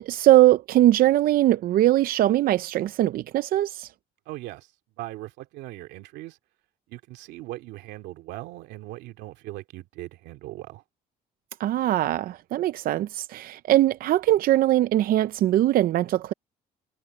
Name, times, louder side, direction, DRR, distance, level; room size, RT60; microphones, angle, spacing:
voice 1, 0.0-3.9 11.6-16.3, right 14 dB, 60° right, 0.5 m, -21 dB
voice 2, 4.3-4.7 5.0-6.4 6.9-10.8, right 17 dB, 90° right, 2.5 m, -39 dB
cardioid pair, 110°, 17 cm